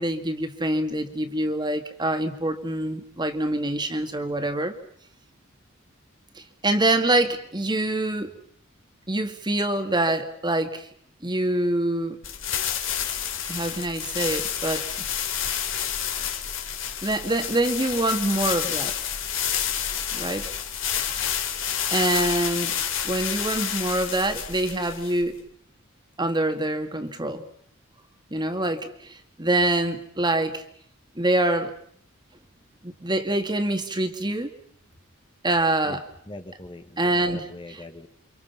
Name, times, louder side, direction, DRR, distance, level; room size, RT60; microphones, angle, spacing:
voice 1, 0.0-4.7 6.4-8.3 9.1-10.9 11.2-12.2 13.5-14.9 17.0-19.0 20.1-20.5 21.9-22.7 23.0-25.4 26.2-27.4 28.3-30.6 31.2-31.7 32.8-34.5 35.4-36.0 37.0-37.5, right 1 dB, 20° right, 7 dB, 2.2 m, -25 dB
sound 1, 12.2-25.4, left 9 dB, 65° left, 3.3 m, -29 dB
voice 2, 35.8-38.1, left 1 dB, 25° left, 7 dB, 1.5 m, -42 dB
29.0 x 26.0 x 5.8 m, 0.64 s
head